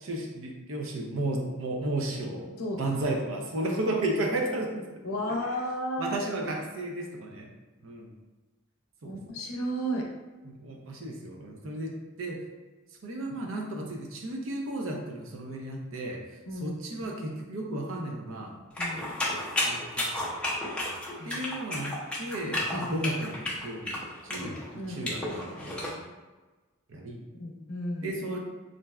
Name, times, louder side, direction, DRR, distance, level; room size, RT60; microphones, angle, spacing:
voice 1, 0.0-2.4 2.8-4.9 6.0-7.5 7.8-8.1 9.0-9.2 10.4-12.4 13.0-16.2 16.5-18.6 19.6-20.1 21.2-26.0 26.9-27.2 28.0-28.4, right 1 dB, 70° right, 1 dB, 0.5 m, -33 dB
voice 2, 5.0-6.2 9.0-10.1 16.5-16.8 18.8-19.2 21.2-21.4 22.7-22.9 24.7-25.1 27.4-28.2, equal, 90° left, 1 dB, 0.5 m, -33 dB
sound 1, 18.8-25.9, left 1 dB, 5° left, 0.5 m, -32 dB
3.1 x 2.6 x 2.3 m, 1.2 s
head